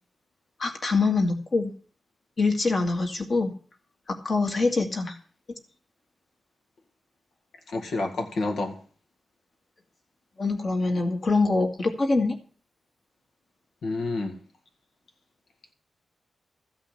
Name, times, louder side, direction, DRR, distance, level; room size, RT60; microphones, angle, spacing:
voice 1, 0.6-1.7 2.4-3.5 4.1-5.2 10.4-12.4, left 3 dB, 40° left, 2.1 m, -24 dB
voice 2, 7.7-8.8 13.8-14.4, left 2 dB, 75° left, 2.0 m, -29 dB
14.5 x 5.6 x 8.5 m
wide cardioid pair, 170°, 0 cm